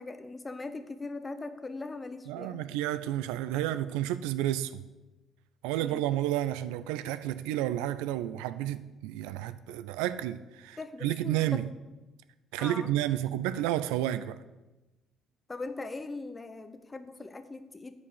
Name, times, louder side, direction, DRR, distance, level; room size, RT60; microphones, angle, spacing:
voice 1, 0.0-2.7 5.8-6.0 10.8-11.6 12.6-12.9 15.5-17.9, left 3 dB, 25° left, 0.9 m, -40 dB
voice 2, 2.3-4.8 5.6-11.7 12.5-14.4, right 13 dB, 70° right, 0.3 m, -31 dB
8.4 x 4.9 x 7.0 m
figure-of-eight pair, 50°, 0 cm